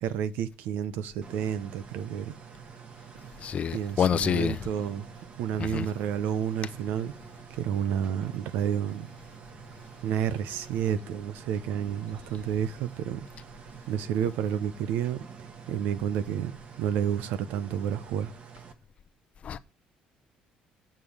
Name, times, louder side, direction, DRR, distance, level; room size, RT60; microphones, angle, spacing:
voice 1, 0.0-2.4 3.7-5.1 5.4-7.1 7.5-9.1 10.0-13.3 13.9-15.2 15.7-18.3, right 9 dB, 85° right, 0.8 m, -30 dB
sound 1, 1.2-18.7, right 6 dB, 45° right, 1.4 m, -48 dB
voice 2, 3.4-4.6 5.6-5.9 19.4-19.6, left 8 dB, 45° left, 0.6 m, -27 dB
7.7 x 7.2 x 4.9 m
cardioid pair, 115°, 3 cm